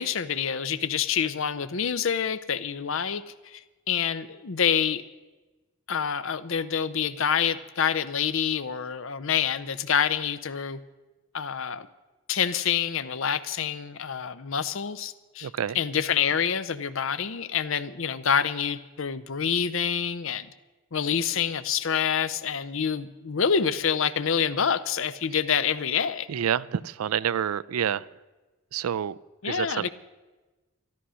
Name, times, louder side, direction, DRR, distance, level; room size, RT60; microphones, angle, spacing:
voice 1, 0.0-3.6 3.9-5.0 5.9-10.8 11.3-11.9 12.3-15.5 15.7-20.5 20.9-26.3 29.4-29.9, left 7 dB, 65° left, 13 dB, 0.6 m, -27 dB
voice 2, 15.4-15.8 26.3-28.1 28.7-29.2 29.4-29.9, right 9 dB, 85° right, 19 dB, 0.4 m, -28 dB
13.0 x 12.5 x 6.3 m, 1.2 s
head